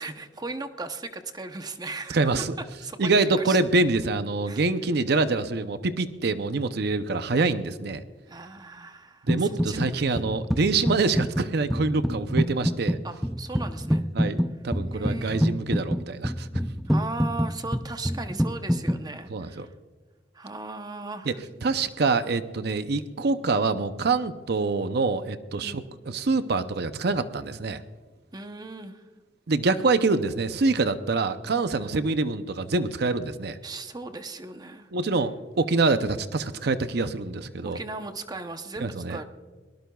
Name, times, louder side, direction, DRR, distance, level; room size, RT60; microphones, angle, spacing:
voice 1, 0.0-2.3 2.8-3.6 4.5-4.6 8.3-10.2 13.0-14.0 14.9-15.5 16.9-19.7 20.3-21.6 25.6-25.8 28.3-29.0 31.8-31.9 33.6-34.9 37.6-39.2, right 3 dB, 20° right, 7 dB, 0.8 m, -37 dB
voice 2, 2.1-2.5 3.0-8.0 9.3-13.0 14.2-14.4 14.6-16.5 19.3-19.7 21.3-21.4 21.6-27.8 29.5-33.6 34.9-37.8 38.8-39.2, right 3 dB, 60° right, 11 dB, 0.6 m, -25 dB
sound 1, 9.3-9.9 10.2-19.0, equal, ahead, 0.3 m, -27 dB
23.0 x 18.5 x 2.3 m, 1.4 s
head